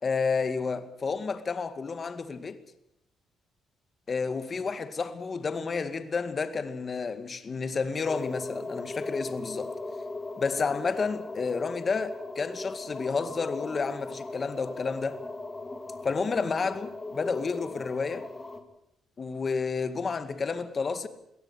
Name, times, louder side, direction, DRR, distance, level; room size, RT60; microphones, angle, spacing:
voice 1, 0.0-2.6 4.1-9.7 10.4-15.2 16.0-18.3 19.2-21.1, left 4 dB, 40° left, 2.1 m, -30 dB
sound 1, 8.0-18.6, left 2 dB, 20° left, 3.0 m, -38 dB
22.0 x 17.0 x 8.3 m
cardioid pair, 90°, 0 cm